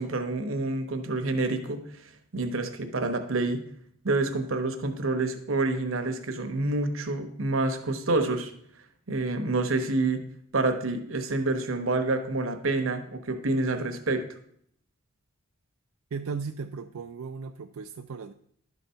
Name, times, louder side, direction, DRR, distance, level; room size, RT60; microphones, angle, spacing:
voice 1, 0.0-3.6 4.0-8.5 9.1-10.2 10.5-14.3, right 2 dB, 70° right, 7 dB, 1.0 m, -28 dB
voice 2, 16.1-18.3, right 5 dB, 90° right, 7 dB, 0.4 m, -36 dB
11.5 x 4.1 x 5.6 m, 0.69 s
head